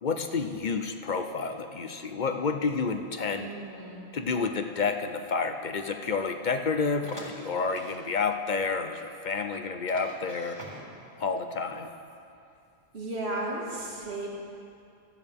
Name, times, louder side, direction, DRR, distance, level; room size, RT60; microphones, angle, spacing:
voice 1, 0.0-3.5 4.1-10.6 11.2-11.9, left 4 dB, 50° left, 6 dB, 0.7 m, -30 dB
voice 2, 3.4-4.2 12.9-14.3, right 2 dB, 80° right, -3 dB, 2.2 m, -35 dB
sound 1, 7.0-8.0 8.6-8.7 8.9-9.0 9.9-11.1, right 1 dB, 25° right, 2.1 m, -45 dB
16.5 x 13.0 x 3.5 m, 2.5 s
omnidirectional pair, 1.1 m